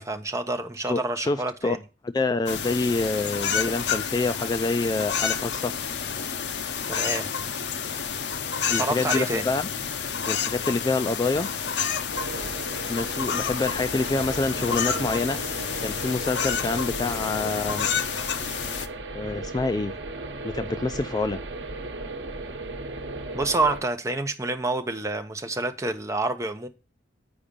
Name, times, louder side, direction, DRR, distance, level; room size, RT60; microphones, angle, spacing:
voice 1, 0.0-1.8 6.9-7.3 8.7-9.5 23.3-26.7, right 2 dB, 15° right, 0.8 m, -28 dB
voice 2, 0.9-1.4 1.6-1.8 2.1-5.7 8.7-9.7 10.3-11.5 12.9-15.4 15.8-17.9 19.1-19.9 20.4-21.4, left 3 dB, 20° left, 0.3 m, -26 dB
sound 1, 2.5-18.9, left 7 dB, 70° left, 0.7 m, -29 dB
sound 2, 12.1-23.8, right 2 dB, 85° right, 1.0 m, -36 dB
8.6 x 5.0 x 5.2 m
head